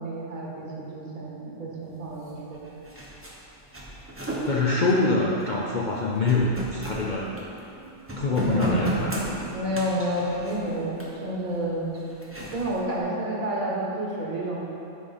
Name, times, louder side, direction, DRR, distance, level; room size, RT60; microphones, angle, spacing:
voice 1, 0.0-2.7 7.2-8.0 8.5-9.1 9.5-11.9 12.5-14.7, right 1 dB, 80° right, -4 dB, 1.8 m, -30 dB
sound 1, 2.3-2.4 2.5-7.8 8.1-11.3 11.9-12.8, equal, 10° right, 0.8 m, -34 dB
voice 2, 4.5-7.3 8.2-9.2, left 2 dB, 55° left, -3 dB, 0.5 m, -24 dB
8.5 x 5.7 x 4.1 m, 2.9 s
omnidirectional pair, 1.4 m